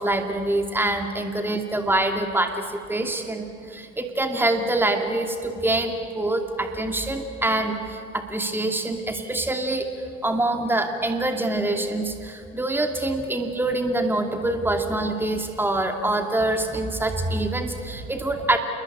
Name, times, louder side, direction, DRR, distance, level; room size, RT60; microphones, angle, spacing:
voice 1, 0.0-9.9 10.2-18.6, right 2 dB, 5° right, 4 dB, 2.5 m, -25 dB
28.0 x 22.0 x 8.7 m, 2.5 s
hypercardioid pair, 65°, 39 cm